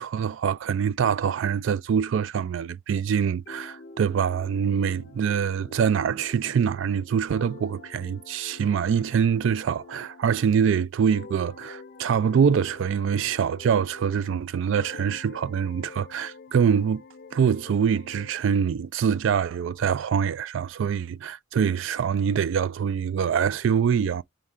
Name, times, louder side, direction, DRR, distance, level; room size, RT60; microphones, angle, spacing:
voice 1, 0.0-17.0 17.3-24.2, right 7 dB, 65° right, 0.3 m, -24 dB
sound 1, 3.5-10.7 11.1-14.4 14.7-18.4, left 4 dB, 45° left, 0.6 m, -47 dB
3.6 x 3.1 x 4.4 m
head